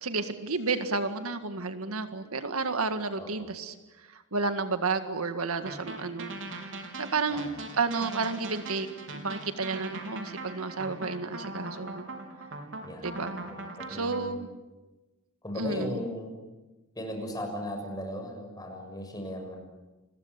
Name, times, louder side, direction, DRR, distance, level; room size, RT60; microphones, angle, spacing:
voice 1, 0.0-3.7 4.1-8.9 9.1-12.1 13.0-13.4 13.9-14.5 15.6-16.0, right 4 dB, 80° right, 9 dB, 1.9 m, -31 dB
voice 2, 3.2-3.5 7.3-7.5 12.8-14.4 15.4-16.4 17.0-19.6, left 1 dB, 20° left, 4 dB, 6.4 m, -37 dB
sound 1, 5.7-14.2, right 2 dB, 60° right, 4.1 m, -40 dB
29.5 x 22.0 x 8.3 m, 1.1 s
head